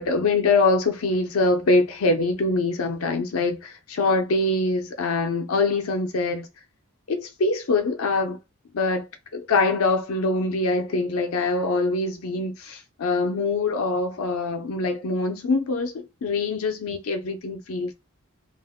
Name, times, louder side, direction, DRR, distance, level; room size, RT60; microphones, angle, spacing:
voice 1, 0.0-6.5 7.1-8.4 8.7-9.1 9.3-17.9, left 3 dB, 80° left, 0.5 m, -24 dB
2.4 x 2.1 x 3.5 m
head